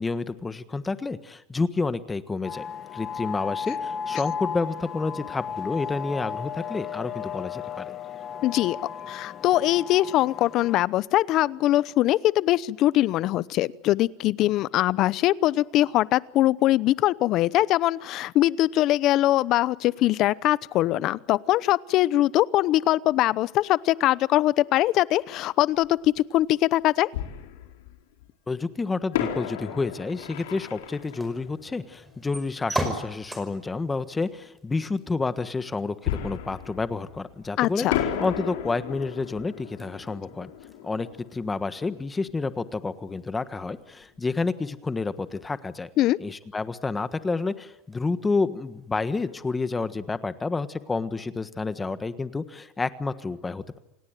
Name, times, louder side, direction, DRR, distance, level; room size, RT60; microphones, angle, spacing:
voice 1, 0.0-2.7 2.9-8.0 28.5-37.9 38.2-40.5 40.8-45.9 46.2-53.8, left 3 dB, 15° left, 12 dB, 1.4 m, -29 dB
sound 1, 2.4-10.9, left 7 dB, 30° left, 1.8 m, -34 dB
voice 2, 8.4-8.8 9.1-27.1 37.6-38.0 46.0-46.2, left 15 dB, 45° left, 19 dB, 0.8 m, -22 dB
Fireworks, 25.8-25.9 27.1-28.2 29.1-32.6 36.0-37.5 37.9-42.4 42.7-42.8 43.3-43.5, left 10 dB, 90° left, 4.3 m, -34 dB
sound 2, 30.1-50.0, right 1 dB, 10° right, 5.4 m, -42 dB
27.5 x 18.5 x 9.1 m, 0.96 s
supercardioid pair, 140°, 0 cm